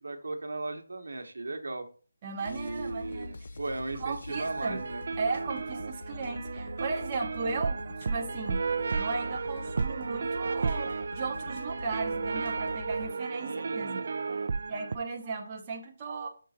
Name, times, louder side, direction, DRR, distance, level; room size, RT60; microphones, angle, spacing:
voice 1, 0.0-1.9 2.4-5.0 13.4-14.1, right 2 dB, 75° right, 5 dB, 1.0 m, -37 dB
voice 2, 2.2-3.3 4.0-4.8 5.2-8.6 8.9-14.0 14.7-16.3, right 4 dB, 20° right, -1 dB, 0.7 m, -36 dB
sound 1, 2.4-13.1, left 2 dB, 55° left, 0.4 m, -44 dB
sound 2, 4.3-15.0, right 4 dB, 50° right, 0.4 m, -33 dB
6.2 x 3.8 x 4.0 m, 0.39 s
figure-of-eight pair, 165°, 0 cm